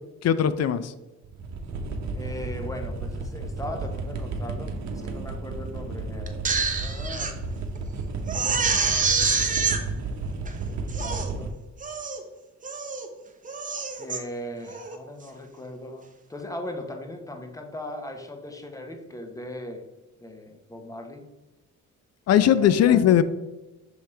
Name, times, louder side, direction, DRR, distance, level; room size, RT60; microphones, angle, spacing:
voice 1, 0.2-0.9 22.3-23.2, left 10 dB, 55° left, 14 dB, 0.5 m, -19 dB
sound 1, 1.2-11.5, right 3 dB, 65° right, 0.9 m, -33 dB
voice 2, 2.1-7.3 8.7-8.9 10.6-11.6 14.0-19.9 20.2-21.3 22.4-23.0, left 1 dB, 10° left, 4 dB, 0.9 m, -39 dB
Crying sobbing, 6.3-7.3 7.8-7.9 8.3-9.8 10.5-10.6 10.9-11.3 11.8-12.2 12.6-13.1 13.4-14.2 14.7-15.0, right 5 dB, 25° right, 0.8 m, -26 dB
6.4 x 3.4 x 4.3 m, 1.1 s
cardioid pair, 90°, 30 cm